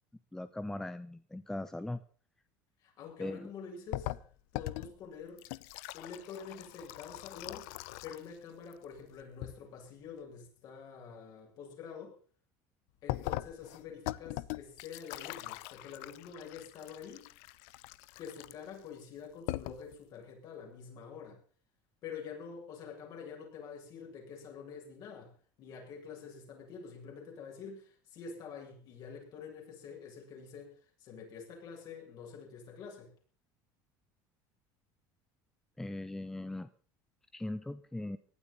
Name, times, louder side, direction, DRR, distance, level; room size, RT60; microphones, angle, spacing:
voice 1, 0.3-2.0 3.2-3.5 35.8-36.7 37.3-38.2, left 1 dB, 5° left, 12 dB, 0.7 m, -39 dB
voice 2, 2.8-4.1 4.5-5.4 5.9-7.7 8.0-12.2 13.0-17.3 18.2-21.4 22.0-33.1, left 6 dB, 50° left, 1 dB, 7.7 m, -47 dB
sound 1, 3.9-8.4 8.6-9.5 13.1-18.8 19.2-19.3 19.5-20.0, left 18 dB, 80° left, 0.8 m, -41 dB
18.0 x 12.0 x 5.6 m, 0.42 s
cardioid pair, 145°, 9 cm